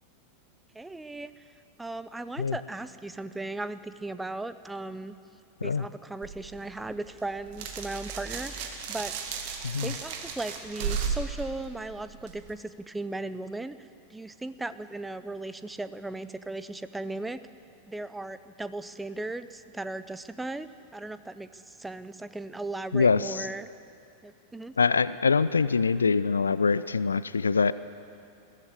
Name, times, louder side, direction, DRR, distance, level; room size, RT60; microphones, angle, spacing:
voice 1, 0.7-1.4 1.8-5.1 5.6-9.1 9.8-17.4 17.9-23.7 24.2-24.7, right 2 dB, 5° right, 13 dB, 0.7 m, -37 dB
sound 1, 6.2-12.5, right 6 dB, 50° right, 2.0 m, -35 dB
voice 2, 22.9-23.4 24.8-27.7, left 5 dB, 75° left, 16 dB, 0.5 m, -24 dB
21.5 x 15.0 x 8.2 m, 2.6 s
figure-of-eight pair, 90°, 0 cm